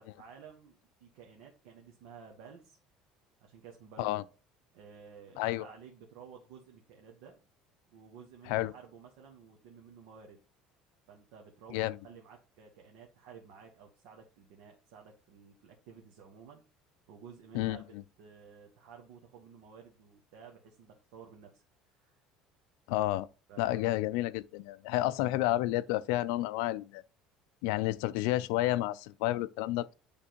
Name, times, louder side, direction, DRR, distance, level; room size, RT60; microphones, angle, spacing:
voice 1, 0.0-2.8 3.4-4.3 4.7-7.4 7.9-10.4 11.1-16.6 17.1-21.6 21.9-22.2 23.5-24.0 24.9-25.2, right 6 dB, 75° right, 1.2 m, -53 dB
voice 2, 17.5-18.0 22.9-23.3 23.6-27.0 27.6-29.9, left 16 dB, 80° left, 0.4 m, -30 dB
9.9 x 3.5 x 3.0 m
cardioid pair, 170°, 0 cm